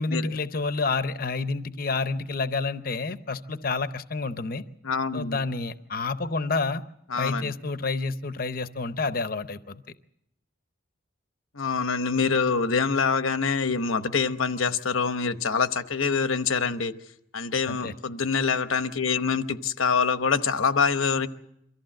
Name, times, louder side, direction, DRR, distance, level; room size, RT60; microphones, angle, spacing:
voice 1, 0.0-4.6 5.1-6.8 7.1-9.8 17.7-17.9, left 3 dB, 45° left, 0.7 m, -29 dB
voice 2, 4.8-5.4 7.1-7.5 11.5-16.9 17.3-21.3, left 5 dB, 85° left, 1.0 m, -25 dB
24.0 x 14.5 x 7.6 m
head